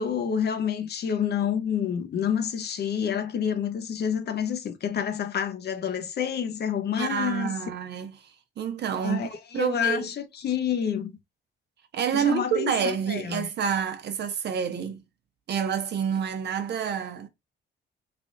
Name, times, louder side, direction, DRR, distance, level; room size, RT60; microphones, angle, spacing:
voice 1, 0.0-7.5 9.0-11.1 12.1-13.5, left 8 dB, 55° left, 0.8 m, -28 dB
voice 2, 7.0-8.1 8.6-9.3 9.5-10.1 11.9-15.0 15.5-17.3, right 7 dB, 60° right, 0.8 m, -28 dB
3.4 x 2.5 x 3.8 m
cardioid pair, 90°, 20 cm